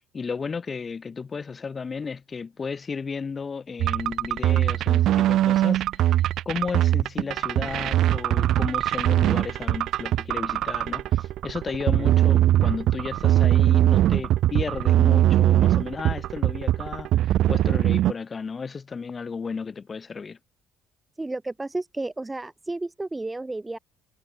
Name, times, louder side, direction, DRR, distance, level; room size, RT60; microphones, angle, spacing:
voice 1, 0.0-20.4, left 5 dB, 35° left, 1.6 m, -34 dB
sound 1, 3.8-18.1, right 13 dB, 60° right, 0.4 m, -21 dB
voice 2, 21.2-23.8, right 2 dB, 15° right, 1.9 m, -32 dB
hypercardioid pair, 55°, 0 cm